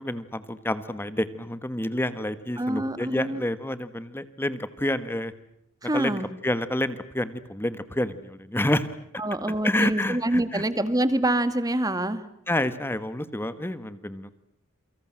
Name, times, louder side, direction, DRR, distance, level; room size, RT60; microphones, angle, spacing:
voice 1, 0.0-5.3 5.9-8.9 9.6-10.6 12.5-14.3, left 1 dB, 10° left, 12 dB, 1.4 m, -28 dB
voice 2, 2.6-3.4 5.8-6.3 9.2-12.2, right 1 dB, 20° right, 11 dB, 2.0 m, -26 dB
28.5 x 24.5 x 7.7 m, 0.73 s
head